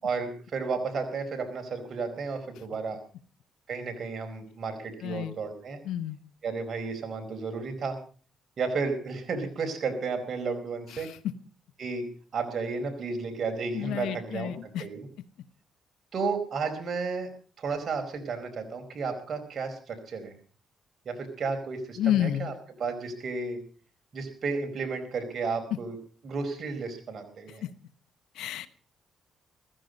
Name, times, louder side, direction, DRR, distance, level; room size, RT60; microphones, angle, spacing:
voice 1, 0.0-3.0 3.7-5.8 6.4-8.0 8.6-11.1 11.8-12.0 12.3-15.1 16.1-17.3 17.6-20.3 21.0-22.5 22.8-23.6 24.1-25.9 26.2-27.6, right 4 dB, 50° right, 5 dB, 4.4 m, -32 dB
voice 2, 5.0-5.3 5.8-6.2 10.9-11.2 13.7-14.9 22.0-22.6 25.7-25.8 27.5-27.7 28.3-28.7, left 11 dB, 85° left, 14 dB, 1.1 m, -30 dB
15.5 x 15.5 x 5.2 m, 0.40 s
cardioid pair, 90°, 0 cm